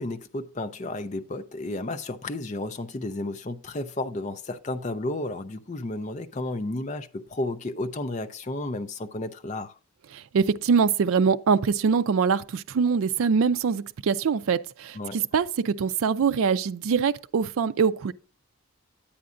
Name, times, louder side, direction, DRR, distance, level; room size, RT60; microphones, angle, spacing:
voice 1, 0.0-9.7 14.9-15.2, left 2 dB, 30° left, 0.5 m, -32 dB
voice 2, 10.1-18.1, right 6 dB, 70° right, 0.4 m, -23 dB
9.4 x 8.5 x 2.5 m
head